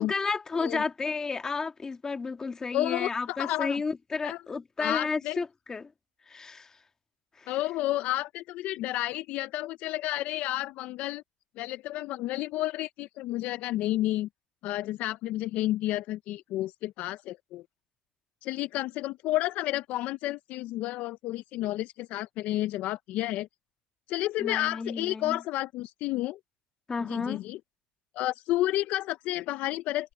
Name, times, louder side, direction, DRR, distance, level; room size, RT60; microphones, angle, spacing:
voice 1, 0.0-5.9 6.3-6.8 7.4-7.5 24.4-25.4 26.9-27.4, left 4 dB, 20° left, 1.7 m, -32 dB
voice 2, 2.7-3.8 4.2-4.4 4.8-5.4 7.5-11.2 11.6-14.3 14.6-17.6 18.4-23.5 24.1-26.4 27.0-27.6 28.1-30.1, left 15 dB, 60° left, 0.5 m, -31 dB
cardioid pair, 120°, 3 cm